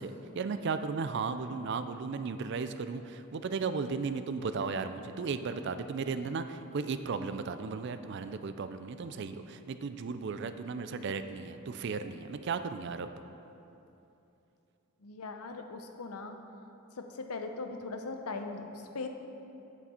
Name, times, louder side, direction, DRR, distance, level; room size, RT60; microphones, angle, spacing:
voice 1, 0.0-13.1, right 5 dB, 50° right, 10 dB, 0.3 m, -35 dB
voice 2, 15.0-16.4 17.0-19.1, left 3 dB, 85° left, 5 dB, 0.7 m, -39 dB
8.3 x 6.9 x 4.3 m, 2.9 s
head